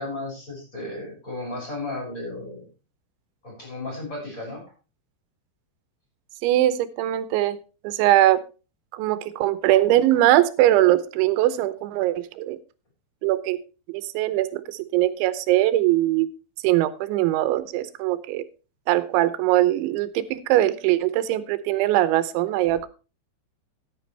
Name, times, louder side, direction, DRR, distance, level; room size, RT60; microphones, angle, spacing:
voice 1, 0.0-2.7 3.4-4.6, left 2 dB, 15° left, -2 dB, 6.9 m, -34 dB
voice 2, 6.4-7.6 7.8-8.4 8.9-12.6 13.2-13.6 13.9-16.3 16.6-18.4 18.9-22.9, right 14 dB, 90° right, 14 dB, 3.1 m, -21 dB
14.5 x 10.0 x 3.3 m, 0.32 s
omnidirectional pair, 5.2 m